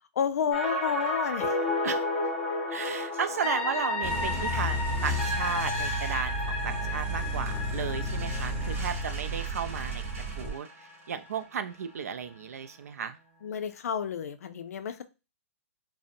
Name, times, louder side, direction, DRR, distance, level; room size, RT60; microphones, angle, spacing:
voice 1, 0.2-1.6 13.4-15.0, left 7 dB, 85° left, 10 dB, 0.4 m, -30 dB
sound 1, 0.5-10.5 10.9-11.0, left 2 dB, 10° left, 0.6 m, -32 dB
sound 2, 2.2-2.3 2.8-3.6 4.9-6.3 6.8-6.9 7.3-13.5, right 3 dB, 65° right, 0.8 m, -48 dB
voice 2, 2.7-10.0 10.4-10.7 11.1-13.2, right 7 dB, 85° right, 10 dB, 0.4 m, -34 dB
sound 3, 4.0-10.5, equal, 25° right, 0.8 m, -32 dB
2.6 x 2.0 x 2.5 m, 0.28 s
hypercardioid pair, 150°, 8 cm